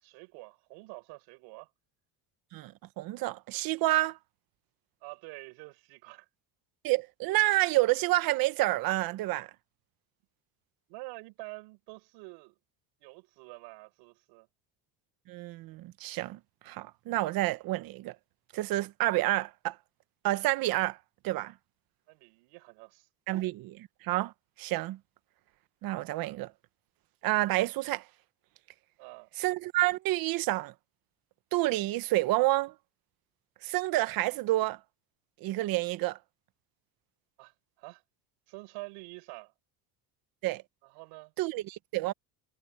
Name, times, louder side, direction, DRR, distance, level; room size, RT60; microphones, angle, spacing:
voice 1, 0.0-1.7 5.0-6.3 10.9-12.6 13.0-14.5 22.1-23.1 29.0-29.3 37.4-38.0 38.5-39.5 40.8-41.3, right 27 dB, 85° right, 6.2 m, -47 dB
voice 2, 2.5-4.2 6.8-9.5 15.3-16.4 16.6-18.1 18.5-19.8 20.2-21.0 21.2-21.5 23.3-24.3 24.6-25.0 25.8-26.5 27.2-28.0 29.4-30.7 31.5-32.7 33.6-34.8 35.4-36.2 40.4-40.6 41.4-42.1, right 18 dB, 55° right, 1.1 m, -29 dB
cardioid pair, 150°, 41 cm